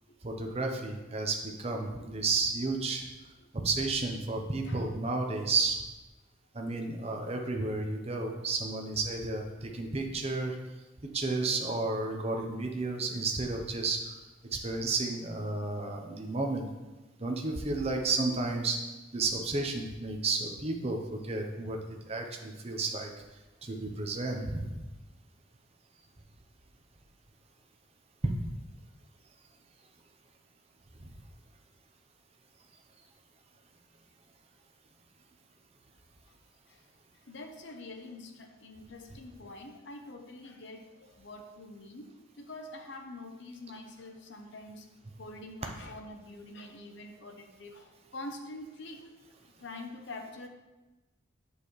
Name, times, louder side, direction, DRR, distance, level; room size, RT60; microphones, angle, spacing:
voice 1, 0.2-3.0 3.6-5.8 6.5-10.5 11.1-14.0 14.5-16.7 17.2-18.8 19.1-23.1 23.6-24.7 31.0-31.1, right 3 dB, 30° right, 2 dB, 0.8 m, -32 dB
voice 2, 37.3-42.1 42.4-44.9 45.2-49.1 49.6-50.5, left 2 dB, 60° left, 4 dB, 0.9 m, -45 dB
8.1 x 6.6 x 3.2 m, 1.1 s
head